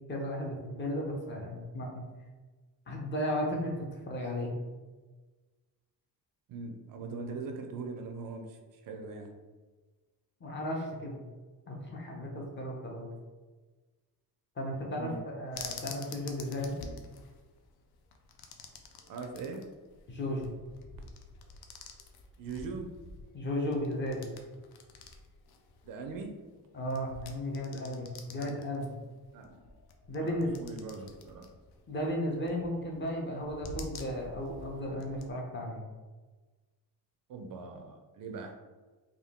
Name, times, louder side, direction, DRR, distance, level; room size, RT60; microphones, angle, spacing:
voice 1, 0.1-2.0 2.9-4.6 10.4-11.2 11.7-13.1 14.6-16.7 20.1-20.5 23.3-24.3 26.7-28.9 30.1-30.6 31.9-35.8, left 1 dB, 30° left, -1 dB, 0.6 m, -35 dB
voice 2, 6.5-9.3 15.0-15.2 19.1-19.7 22.4-22.9 25.8-26.4 28.4-28.5 29.3-29.6 30.1-31.5 37.3-38.5, right 4 dB, 60° right, 5 dB, 0.5 m, -41 dB
sound 1, 15.5-35.3, left 4 dB, 75° left, 0.5 m, -49 dB
3.6 x 2.3 x 3.5 m, 1.3 s
cardioid pair, 180°, 38 cm